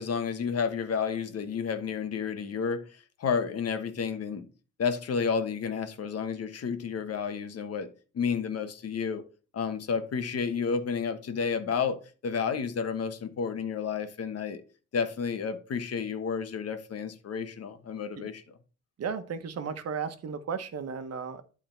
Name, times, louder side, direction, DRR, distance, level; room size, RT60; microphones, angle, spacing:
voice 1, 0.0-4.5 4.8-7.9 8.1-9.2 9.5-14.6 14.9-18.4, left 6 dB, 55° left, 1.3 m, -31 dB
voice 2, 19.0-21.4, right 6 dB, 55° right, 1.1 m, -34 dB
11.5 x 3.8 x 4.5 m
cardioid pair, 90°, 30 cm